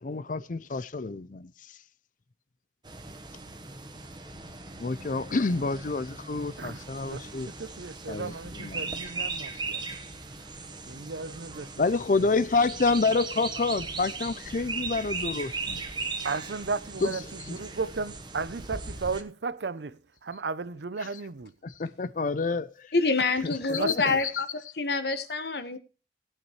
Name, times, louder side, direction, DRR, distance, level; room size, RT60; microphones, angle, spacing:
voice 1, 0.0-1.8 4.8-7.5 8.1-8.9 11.8-15.8 17.0-17.6 21.0-21.2 21.6-22.9 23.4-24.0, left 3 dB, 45° left, 0.5 m, -28 dB
sound 1, 2.8-19.2, right 4 dB, 25° right, 1.2 m, -38 dB
voice 2, 7.1-9.8 10.9-11.7 16.2-17.2 17.5-19.9 20.2-21.5 23.8-24.2, right 4 dB, 70° right, 0.6 m, -34 dB
voice 3, 22.9-24.5 24.8-25.8, left 3 dB, 60° left, 1.4 m, -26 dB
18.0 x 9.0 x 3.2 m
head